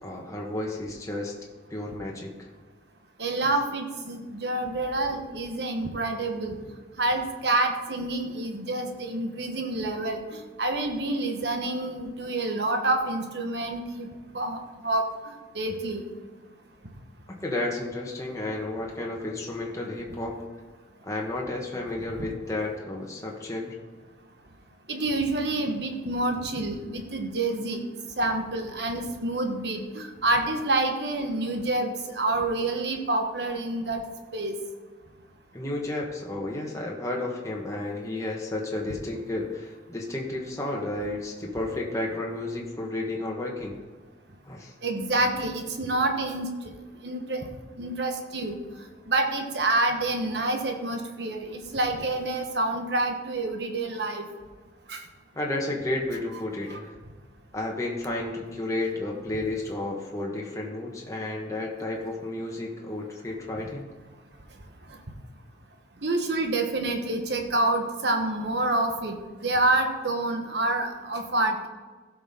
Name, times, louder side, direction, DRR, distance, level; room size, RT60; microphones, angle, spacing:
voice 1, 0.0-1.4 1.7-2.5 17.4-20.4 21.0-23.7 35.5-43.8 44.4-44.7 55.3-56.9 57.5-63.9, left 2 dB, 15° left, -2 dB, 1.3 m, -32 dB
voice 2, 3.2-6.6 7.0-14.1 14.3-16.0 22.2-22.3 24.9-27.8 28.2-34.0 34.3-34.6 44.8-46.7 47.0-47.5 47.8-48.6 49.1-54.3 54.9-55.0 56.7-56.8 66.0-69.2 69.4-71.7, right 2 dB, 65° right, 4 dB, 1.3 m, -28 dB
15.5 x 6.2 x 3.8 m, 1.4 s
head